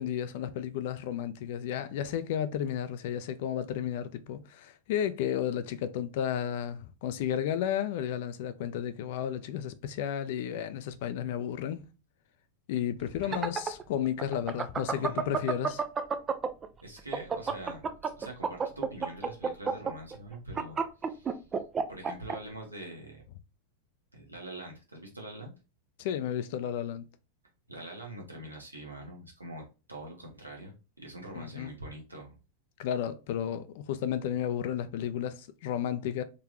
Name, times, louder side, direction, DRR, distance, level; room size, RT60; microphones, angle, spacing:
voice 1, 0.0-11.9 12.7-15.8 26.0-27.0 31.3-31.7 32.8-36.2, left 9 dB, 50° left, 0.5 m, -33 dB
sound 1, 13.1-16.7 17.0-22.4, right 6 dB, 20° right, 0.5 m, -30 dB
voice 2, 14.9-15.3 16.8-21.4 21.9-23.2 24.1-25.5 27.7-32.4, right 1 dB, 80° right, 1.4 m, -44 dB
3.8 x 3.3 x 2.9 m
figure-of-eight pair, 90°, 0 cm